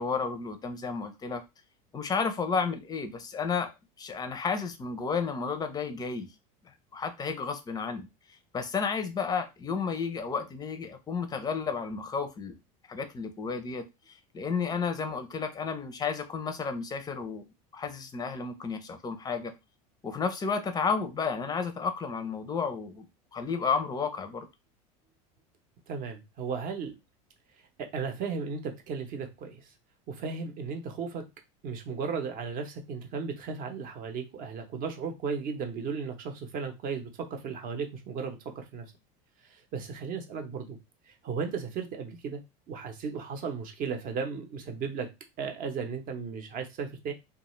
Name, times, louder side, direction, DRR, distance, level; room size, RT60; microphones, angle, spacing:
voice 1, 0.0-1.4 1.9-3.7 4.0-6.3 6.9-8.1 8.5-12.6 12.9-17.4 17.7-19.5 20.0-23.0 23.3-24.5, left 5 dB, 20° left, 9 dB, 0.5 m, -32 dB
voice 2, 25.9-26.9 27.8-29.7 30.1-31.2 31.6-38.9 39.4-40.8 41.1-42.4 42.7-45.1 45.4-47.1, right 5 dB, 45° right, 5 dB, 0.8 m, -35 dB
2.4 x 2.4 x 3.0 m, 0.23 s
supercardioid pair, 115°, 19 cm